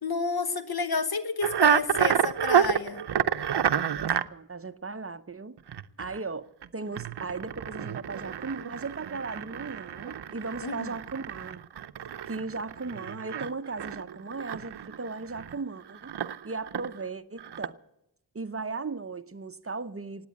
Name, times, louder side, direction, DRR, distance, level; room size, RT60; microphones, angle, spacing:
voice 1, 0.0-3.0 10.6-10.9, left 4 dB, 65° left, 11 dB, 1.3 m, -30 dB
sound 1, 1.4-4.3 5.6-6.2 6.6-6.7 6.9-15.6 15.9-17.0 17.4-17.7, right 9 dB, 75° right, 0.6 m, -29 dB
voice 2, 4.0-5.6 6.0-6.5 6.7-11.6 12.3-16.2 16.4-17.8 18.3-20.3, right 3 dB, 35° right, 13 dB, 0.7 m, -37 dB
17.0 x 9.5 x 8.4 m, 0.87 s
cardioid pair, 45°, 40 cm